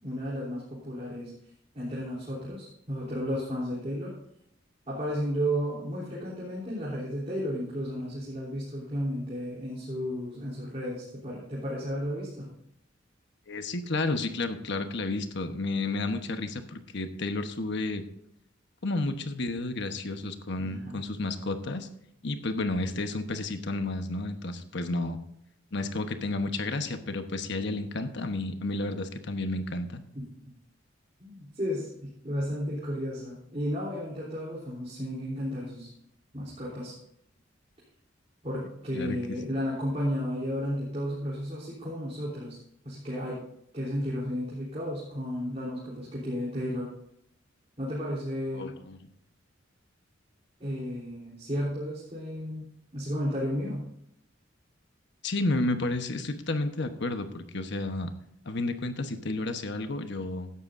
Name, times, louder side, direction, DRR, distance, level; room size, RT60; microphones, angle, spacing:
voice 1, 0.0-1.3 1.7-4.1 4.9-12.5 20.6-21.0 30.1-30.2 31.2-35.9 36.3-36.9 38.4-42.6 42.8-43.4 43.7-46.9 47.8-48.8 50.6-52.7 52.9-53.8, equal, 35° right, -7 dB, 3.5 m, -33 dB
voice 2, 13.5-18.0 18.8-21.9 22.2-25.2 25.7-30.0 38.9-39.2 48.5-49.0 55.2-58.1 58.4-60.5, left 2 dB, 65° left, 7 dB, 1.1 m, -31 dB
15.5 x 11.5 x 2.6 m, 0.75 s
head